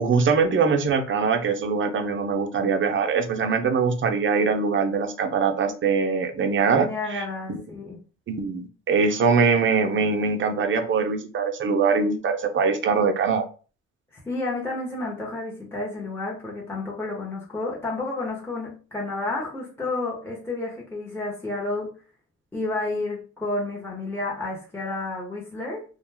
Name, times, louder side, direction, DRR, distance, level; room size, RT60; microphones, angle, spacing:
voice 1, 0.0-7.2 7.5-7.6 8.3-13.4, right 5 dB, 40° right, 6 dB, 0.6 m, -22 dB
voice 2, 6.6-8.0 14.3-21.9 22.5-25.8, left 2 dB, 10° left, -4 dB, 0.8 m, -31 dB
2.5 x 2.2 x 3.3 m, 0.37 s
cardioid pair, 90°, 30 cm